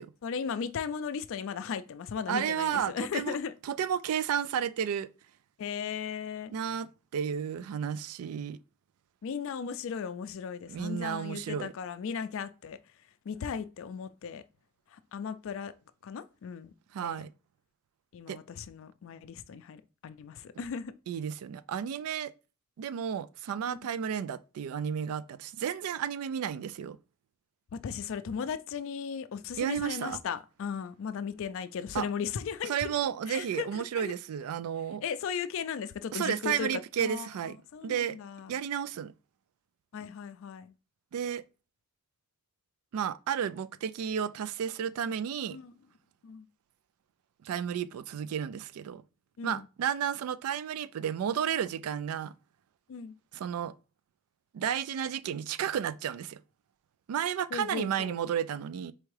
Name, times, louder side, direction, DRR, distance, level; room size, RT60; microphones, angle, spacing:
voice 1, 0.2-3.5 5.6-6.5 9.2-12.8 13.3-14.4 14.9-15.7 16.0-16.7 17.0-17.3 18.1-20.9 23.7-23.8 27.7-33.0 33.3-34.1 35.0-38.6 39.9-40.7 45.5-45.7 46.2-46.5 49.4-49.7 52.9-53.1 57.5-58.1, left 6 dB, 65° left, 0.4 m, -37 dB
voice 2, 2.3-3.4 3.6-5.1 6.5-8.6 10.7-11.7 16.9-17.3 18.3-18.4 21.1-22.3 22.8-27.0 29.6-30.2 31.9-32.1 32.7-35.0 36.1-37.6 37.8-38.2 38.5-39.1 41.1-41.4 42.9-45.6 47.4-49.0 49.4-52.3 53.3-53.7 54.5-56.4 57.1-58.9, right 8 dB, 85° right, 0.3 m, -32 dB
4.4 x 3.4 x 3.2 m
head